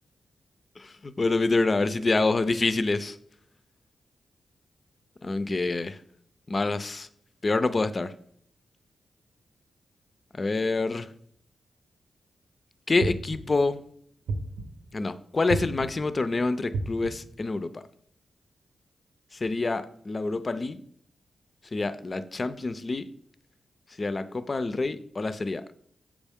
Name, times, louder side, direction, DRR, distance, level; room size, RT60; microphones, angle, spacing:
voice 1, 0.8-3.2 5.2-6.0 6.5-7.1 7.4-8.1 10.4-11.1 12.9-13.8 14.9-17.8 19.3-20.8 21.7-23.0 24.0-25.6, left 3 dB, 35° left, 12 dB, 0.4 m, -27 dB
sound 1, 13.0-13.6 14.3-14.9 15.5-16.1 16.7-17.4, right 3 dB, 80° right, 0.8 m, -33 dB
7.2 x 4.9 x 3.5 m, 0.65 s
cardioid pair, 75°, 0 cm